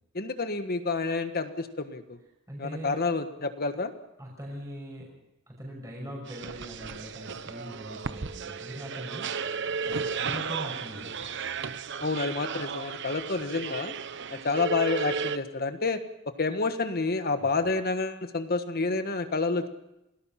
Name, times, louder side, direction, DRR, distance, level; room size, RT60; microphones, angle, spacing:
voice 1, 0.1-2.2 2.6-3.9 12.0-14.0 14.3-16.0 16.4-19.7, left 3 dB, 50° left, 8 dB, 1.5 m, -29 dB
voice 2, 2.5-3.0 4.2-5.1 5.5-9.3 9.9-11.5 17.4-17.5, equal, 15° right, -2 dB, 5.9 m, -41 dB
sound 1, 6.3-15.4, right 5 dB, 60° right, 0.9 m, -34 dB
28.5 x 18.5 x 5.8 m, 0.91 s
head